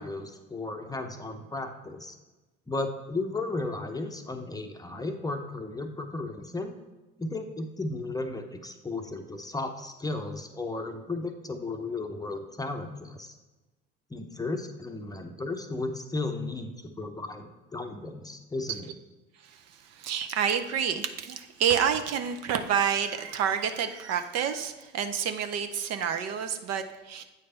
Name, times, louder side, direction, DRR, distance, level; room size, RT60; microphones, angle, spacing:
voice 1, 0.0-2.2 2.7-6.7 7.2-13.3 14.1-18.9, left 2 dB, 10° left, 5 dB, 0.7 m, -34 dB
voice 2, 19.4-27.2, right 8 dB, 55° right, 8 dB, 0.7 m, -29 dB
8.2 x 3.3 x 5.5 m, 1.1 s
hypercardioid pair, 75°, 31 cm